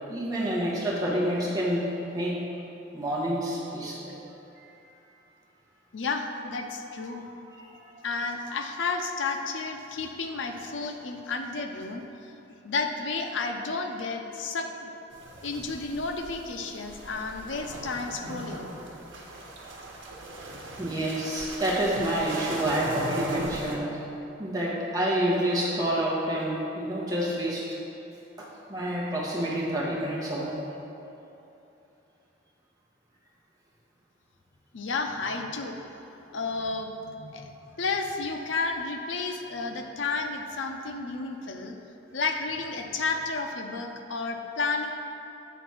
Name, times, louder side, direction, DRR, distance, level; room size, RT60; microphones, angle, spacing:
voice 1, 0.1-1.8 2.1-2.4 2.9-4.2 4.6-4.8 7.6-8.0 20.8-24.0 24.4-27.6 28.4-30.6, right 1 dB, 20° right, -6 dB, 1.3 m, -28 dB
voice 2, 5.9-7.2 8.0-15.0 15.4-18.7 34.7-35.8 36.3-41.8 42.1-44.9, left 4 dB, 75° left, 4 dB, 0.6 m, -32 dB
sound 1, 15.1-23.8, right 1 dB, 80° right, 1.1 m, -39 dB
8.1 x 4.0 x 6.1 m, 2.9 s
head